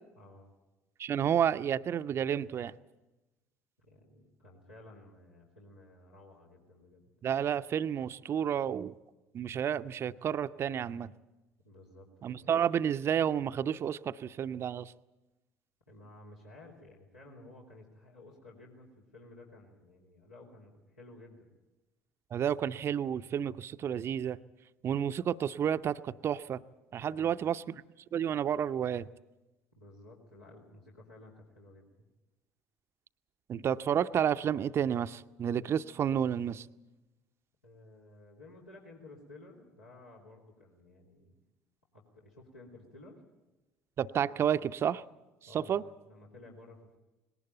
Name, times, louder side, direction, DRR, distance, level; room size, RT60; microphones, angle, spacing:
voice 1, 0.1-0.5 3.8-7.0 11.6-12.5 15.9-21.5 27.1-27.4 29.7-31.9 37.6-41.3 41.9-43.2 45.5-47.0, left 2 dB, 85° left, -5 dB, 3.2 m, -54 dB
voice 2, 1.0-2.7 7.2-9.0 9.3-11.1 12.2-14.9 22.3-24.4 24.8-26.6 26.9-27.6 28.1-29.1 33.5-36.7 44.0-45.0 45.5-45.8, right 9 dB, 40° right, 13 dB, 0.6 m, -30 dB
19.5 x 18.5 x 9.1 m, 1.1 s
figure-of-eight pair, 60°, 7 cm